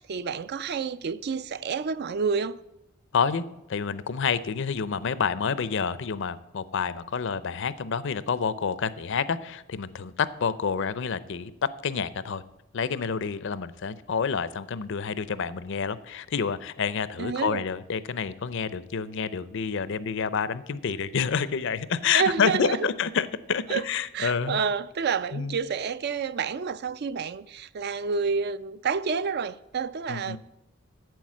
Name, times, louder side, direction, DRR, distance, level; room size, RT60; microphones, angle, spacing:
voice 1, 0.0-2.6 17.2-17.6 22.1-22.9 23.7-23.9 24.1-30.4, right 5 dB, 55° right, 0.4 m, -29 dB
voice 2, 3.1-3.4 3.7-11.5 11.8-12.4 12.7-24.6 25.3-25.6 30.1-30.4, left 6 dB, 65° left, 0.5 m, -28 dB
9.2 x 7.8 x 7.4 m
head